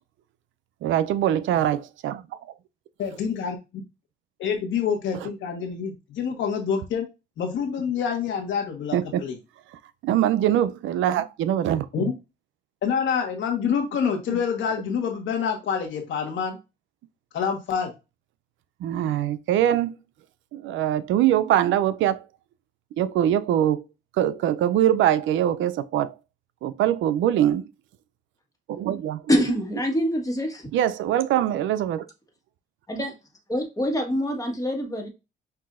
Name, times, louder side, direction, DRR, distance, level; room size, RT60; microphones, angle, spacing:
voice 1, 0.8-2.2 5.2-5.3 8.9-9.2 10.0-12.1 14.3-14.4 18.8-19.9 20.5-22.2 23.0-23.8 24.2-26.1 26.6-27.7 28.7-29.2 30.7-32.1, right 11 dB, 80° right, 0.4 m, -23 dB
voice 2, 3.0-3.6 4.4-7.1 7.4-9.4 11.9-12.1 12.8-16.6 17.3-17.9, left 7 dB, 75° left, 1.3 m, -27 dB
voice 3, 29.3-30.6 32.9-33.1 33.5-35.1, equal, 15° left, 1.4 m, -25 dB
5.8 x 2.7 x 2.4 m
cardioid pair, 90°, 20 cm